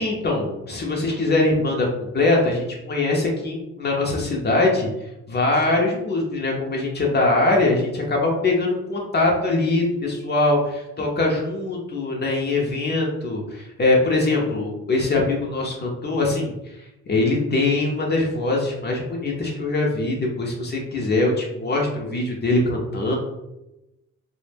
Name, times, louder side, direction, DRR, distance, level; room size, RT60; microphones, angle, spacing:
voice 1, 0.0-4.9 5.3-16.5 17.1-23.2, left 2 dB, 35° left, -1 dB, 0.6 m, -22 dB
2.1 x 2.1 x 3.2 m, 0.94 s
cardioid pair, 90°, 30 cm